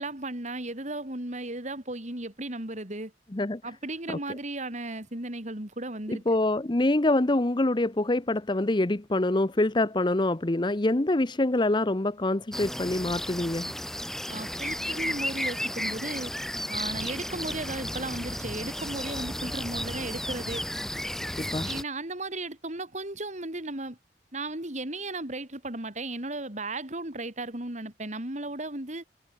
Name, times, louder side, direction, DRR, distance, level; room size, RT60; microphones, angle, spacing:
voice 1, 0.0-3.1 3.6-6.2 14.3-16.3 16.7-20.6 21.6-24.0 24.3-29.1, right 2 dB, 45° right, 3.9 m, -35 dB
voice 2, 6.1-13.7 21.4-21.7, left 2 dB, 25° left, 0.8 m, -25 dB
sound 1, 12.5-21.8, equal, ahead, 6.8 m, -33 dB
head